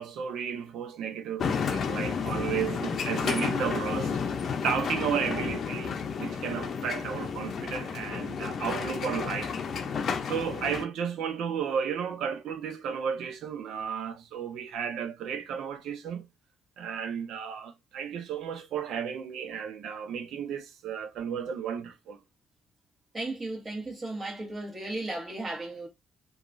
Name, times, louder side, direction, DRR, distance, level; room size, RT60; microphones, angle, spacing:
voice 1, 0.0-4.2 4.6-9.6 10.2-16.3 16.8-22.2, right 7 dB, 80° right, 0.6 m, -33 dB
sound 1, 1.4-10.8, left 6 dB, 55° left, 0.6 m, -31 dB
voice 2, 23.1-25.9, right 2 dB, 30° right, 1.4 m, -35 dB
2.9 x 2.4 x 2.5 m
cardioid pair, 90°, 0 cm